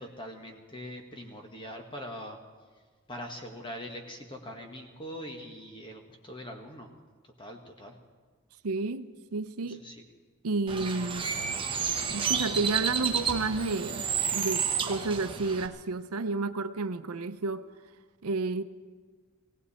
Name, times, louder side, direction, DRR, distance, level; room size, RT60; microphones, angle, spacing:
voice 1, 0.0-2.4 3.1-6.9 7.4-7.9 9.8-9.9, equal, 20° left, 3 dB, 1.5 m, -42 dB
voice 2, 8.6-9.8 10.4-11.4 12.1-17.7 18.2-18.6, right 3 dB, 85° right, 11 dB, 0.6 m, -31 dB
Bird, 10.7-15.7, right 6 dB, 25° right, 1.0 m, -31 dB
18.5 x 17.5 x 4.3 m, 1.5 s
head